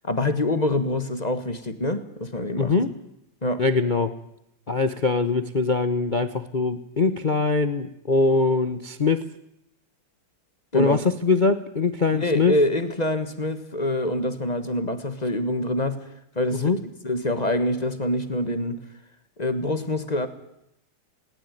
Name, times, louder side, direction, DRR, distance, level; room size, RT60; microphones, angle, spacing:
voice 1, 0.0-2.7 3.4-3.6 10.7-11.0 12.1-16.1 16.3-16.7 17.0-18.8 19.4-20.3, left 1 dB, 20° left, 10 dB, 1.4 m, -25 dB
voice 2, 2.6-2.9 3.6-4.1 4.7-9.2 10.7-12.5 16.5-16.8, left 4 dB, 45° left, 11 dB, 0.6 m, -22 dB
19.5 x 18.5 x 9.2 m, 0.80 s
omnidirectional pair, 2.3 m